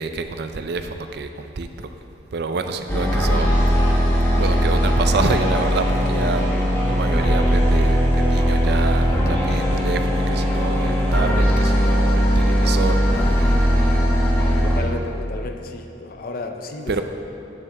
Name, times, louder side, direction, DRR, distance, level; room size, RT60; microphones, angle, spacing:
voice 1, 0.0-1.9 2.3-3.5 3.8-4.1 4.4-6.5 6.9-13.7 16.9-17.0, right 4 dB, 60° right, 8 dB, 0.4 m, -28 dB
sound 1, 2.9-14.8, equal, 15° left, 1.0 m, -19 dB
voice 2, 14.6-17.0, left 2 dB, 50° left, 5 dB, 0.5 m, -32 dB
9.2 x 7.4 x 3.4 m, 2.8 s
head